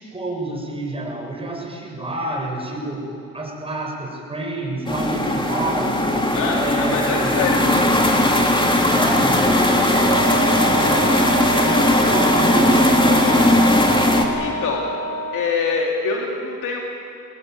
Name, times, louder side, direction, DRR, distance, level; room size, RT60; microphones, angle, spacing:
voice 1, 0.0-3.1 3.3-6.1 6.5-7.4 8.9-13.6, right 2 dB, 20° right, -1 dB, 7.4 m, -29 dB
sound 1, 4.9-14.3, left 1 dB, 15° left, 3.5 m, -18 dB
voice 2, 6.3-7.8 14.4-14.8 15.3-16.8, left 4 dB, 85° left, -1 dB, 2.9 m, -24 dB
Wind instrument woodwind instrument, 9.9-15.6, right 2 dB, 60° right, 1.9 m, -27 dB
24.0 x 19.5 x 9.7 m, 2.6 s
cardioid pair, 90°, 30 cm